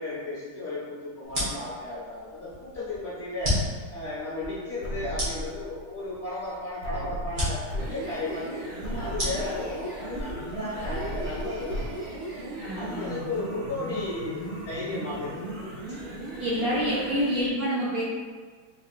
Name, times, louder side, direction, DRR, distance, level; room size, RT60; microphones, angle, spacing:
voice 1, 0.0-12.0 12.7-15.6 15.9-16.0 16.7-17.0, left 2 dB, 40° left, -9 dB, 1.1 m, -34 dB
sound 1, 1.2-11.1, left 1 dB, 45° right, 1.6 m, -34 dB
sound 2, 4.8-5.8 6.8-7.9 8.3-8.4 8.8-9.8 10.8-11.9, equal, 60° left, 1.5 m, -35 dB
sound 3, 7.7-17.5, right 1 dB, 80° right, 1.6 m, -37 dB
voice 2, 12.6-13.2 16.4-18.0, equal, 65° right, -9 dB, 1.0 m, -27 dB
4.1 x 3.4 x 2.4 m, 1.6 s
omnidirectional pair, 2.2 m